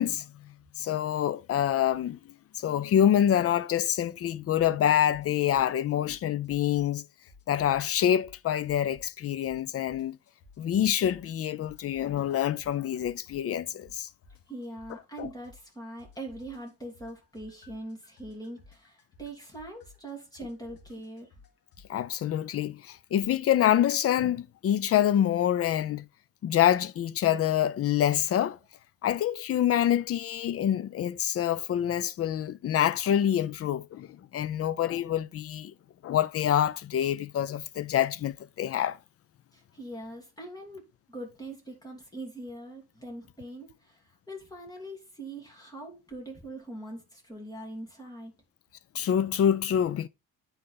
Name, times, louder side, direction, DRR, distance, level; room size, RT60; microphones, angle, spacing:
voice 1, 0.0-2.2 2.6-7.0 7.5-10.2 10.6-14.1 15.2-15.3 21.9-26.0 26.4-28.6 29.0-34.1 34.3-35.7 36.0-39.0 48.9-50.1, left 10 dB, 40° left, 0.5 m, -26 dB
sound 1, 4.5-4.8 5.1-7.0 7.3-9.2 9.4-11.4 11.6-15.7 16.0-21.9, left 3 dB, 70° left, 1.8 m, -55 dB
voice 2, 14.5-21.3 39.5-48.3, right 1 dB, 10° left, 2.8 m, -42 dB
9.8 x 4.1 x 4.0 m
cardioid pair, 145°, 37 cm